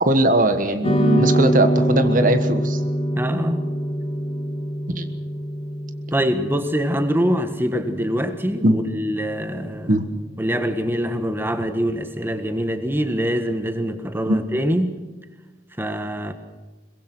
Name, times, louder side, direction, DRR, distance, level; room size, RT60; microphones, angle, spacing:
voice 1, 0.0-2.8 4.9-5.1 8.6-8.8 9.9-10.0 14.3-14.4, right 1 dB, 50° right, 9 dB, 1.4 m, -19 dB
sound 1, 0.8-9.4, equal, 35° left, 3.1 m, -24 dB
voice 2, 3.1-3.7 6.1-9.9 10.4-15.0 15.8-16.3, equal, 15° right, 8 dB, 1.5 m, -24 dB
23.0 x 21.5 x 6.2 m, 1.2 s
head